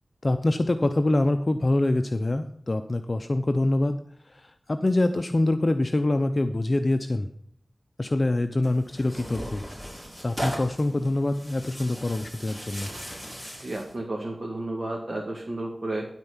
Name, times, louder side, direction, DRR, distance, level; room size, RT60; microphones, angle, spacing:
voice 1, 0.2-4.0 4.2-7.3 8.0-9.7 10.2-12.9, left 2 dB, 40° left, 8 dB, 0.7 m, -25 dB
Tearing, 8.6-14.0, equal, 5° right, 4.4 m, -38 dB
voice 2, 13.6-16.1, right 2 dB, 45° right, -1 dB, 2.0 m, -32 dB
13.5 x 4.5 x 7.2 m, 0.68 s
cardioid pair, 50°, 0 cm